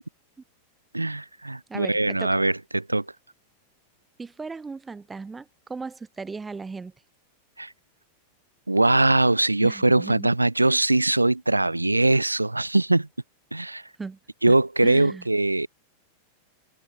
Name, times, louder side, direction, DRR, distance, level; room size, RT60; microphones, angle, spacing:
voice 1, 0.9-3.1 7.6-7.7 8.7-13.1 13.5-13.8 14.4-15.7, right 2 dB, 85° right, 0.7 m, -21 dB
voice 2, 1.7-2.4 4.2-6.9 9.6-10.3 14.0-14.2 14.5-14.6 14.8-15.3, right 4 dB, 15° right, 5.8 m, -37 dB
figure-of-eight pair, 90°, 0 cm